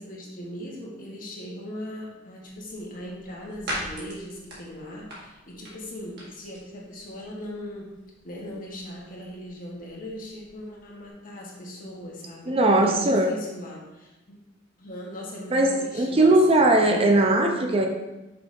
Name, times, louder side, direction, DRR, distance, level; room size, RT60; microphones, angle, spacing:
voice 1, 0.0-7.9 8.2-14.4 14.8-16.6 16.9-17.2, equal, 45° left, -3 dB, 1.5 m, -39 dB
sound 1, 2.4-11.1, equal, 55° right, 1.8 m, -42 dB
voice 2, 12.5-13.4 15.5-17.9, right 2 dB, 30° right, 3 dB, 0.5 m, -19 dB
5.9 x 3.5 x 5.2 m, 1.0 s
head